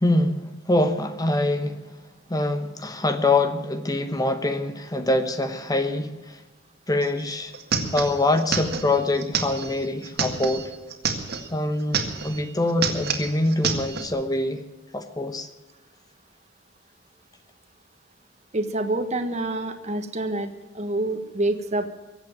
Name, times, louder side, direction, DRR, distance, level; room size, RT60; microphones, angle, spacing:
voice 1, 0.0-1.8 2.3-6.4 6.9-7.5 7.9-10.7 11.5-14.6 14.9-15.5, left 2 dB, 20° left, 9 dB, 1.0 m, -24 dB
sound 1, 7.0-7.1 7.3-11.5 11.8-12.4 12.7-14.1, right 5 dB, 55° right, 2.0 m, -28 dB
voice 2, 18.5-21.9, right 2 dB, 35° right, 6 dB, 1.3 m, -27 dB
23.0 x 8.0 x 7.4 m, 1.2 s
head